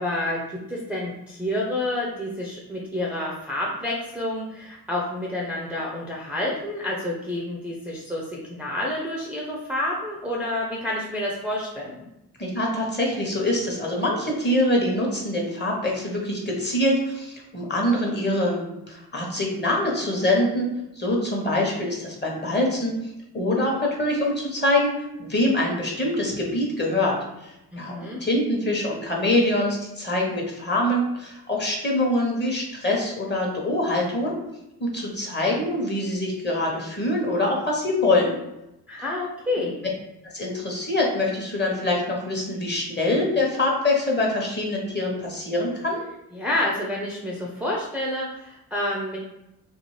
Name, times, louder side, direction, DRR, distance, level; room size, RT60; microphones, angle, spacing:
voice 1, 0.0-12.0 27.7-28.2 38.9-39.8 46.3-49.2, left 1 dB, 5° right, -5 dB, 0.5 m, -29 dB
voice 2, 12.4-20.7 21.0-22.9 23.3-34.3 34.8-38.4 40.2-46.0, left 1 dB, 25° left, -2 dB, 1.0 m, -24 dB
2.6 x 2.4 x 3.1 m, 0.88 s
cardioid pair, 70°, 39 cm